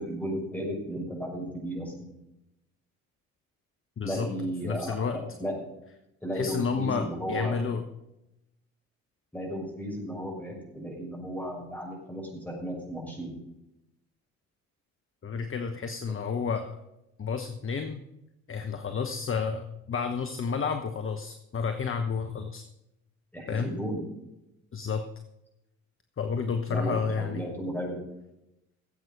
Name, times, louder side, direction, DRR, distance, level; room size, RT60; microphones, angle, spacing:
voice 1, 0.0-2.1 4.0-5.5 6.2-7.6 9.3-13.3 23.3-24.0 26.7-28.0, equal, 5° left, -1 dB, 6.0 m, -34 dB
voice 2, 4.0-4.3 4.6-5.2 6.3-7.8 15.2-16.8 17.2-18.0 18.5-22.6 23.5-23.7 24.7-25.0 26.2-27.4, left 5 dB, 30° left, 7 dB, 1.1 m, -30 dB
15.5 x 8.1 x 5.4 m, 0.89 s
hypercardioid pair, 55°, 41 cm